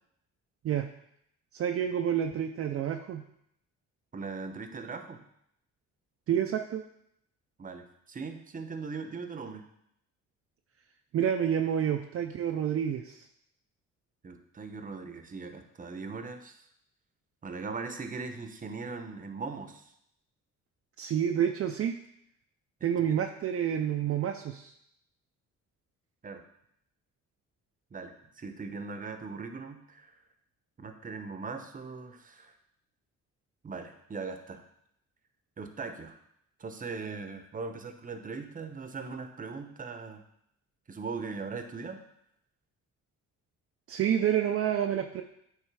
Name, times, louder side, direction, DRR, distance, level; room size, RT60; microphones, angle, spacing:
voice 1, 1.5-3.2 6.3-6.8 11.1-13.2 21.0-21.9 22.8-24.7 43.9-45.2, right 9 dB, 50° right, 3 dB, 0.5 m, -28 dB
voice 2, 4.1-5.2 7.6-9.7 14.2-16.7 17.4-19.9 23.0-23.1 26.2-26.4 27.9-30.1 30.8-32.5 33.6-34.6 35.6-36.2 36.6-40.2 40.9-42.0, right 4 dB, 25° right, 7 dB, 0.8 m, -40 dB
8.9 x 3.2 x 4.7 m, 0.74 s
cardioid pair, 90°, 30 cm